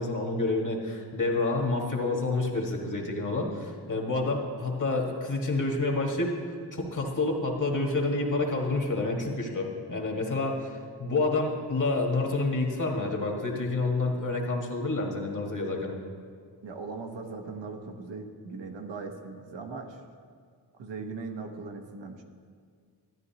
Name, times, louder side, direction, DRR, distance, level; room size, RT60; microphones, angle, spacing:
voice 1, 0.0-6.3 6.7-15.9, left 2 dB, 45° left, 1 dB, 1.6 m, -28 dB
voice 2, 16.6-20.0 20.8-22.2, right 4 dB, 85° right, 4 dB, 0.9 m, -39 dB
12.0 x 9.8 x 2.8 m, 2.1 s
cardioid pair, 65°, 42 cm